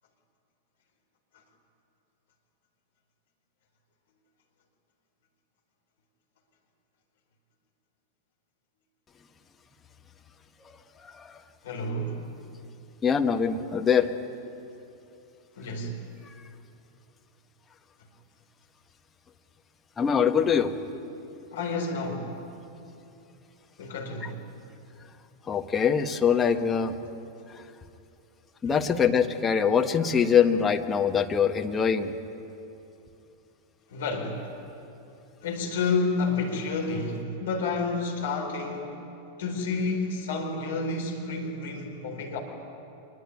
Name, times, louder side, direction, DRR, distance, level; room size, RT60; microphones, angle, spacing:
voice 1, 11.0-11.4 13.0-14.1 16.2-16.3 20.0-20.8 24.2-24.3 25.5-27.0 27.5-27.6 28.6-32.1, left 7 dB, 20° left, 5 dB, 1.5 m, -23 dB
voice 2, 11.6-12.3 15.6-16.0 21.5-22.4 23.8-24.4 33.9-34.5 35.4-38.9 39.4-42.4, left 3 dB, 60° left, 2 dB, 4.4 m, -30 dB
26.0 x 21.0 x 9.7 m, 2.8 s
figure-of-eight pair, 90°, 0 cm